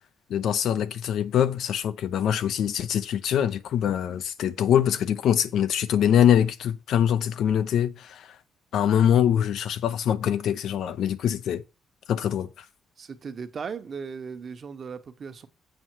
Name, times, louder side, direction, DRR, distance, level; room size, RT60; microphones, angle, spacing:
voice 1, 0.3-8.3 8.7-11.6 12.1-12.5, left 9 dB, 75° left, 0.8 m, -23 dB
voice 2, 13.0-15.5, right 6 dB, 50° right, 1.1 m, -37 dB
7.8 x 5.6 x 4.6 m
cardioid pair, 90°, 0 cm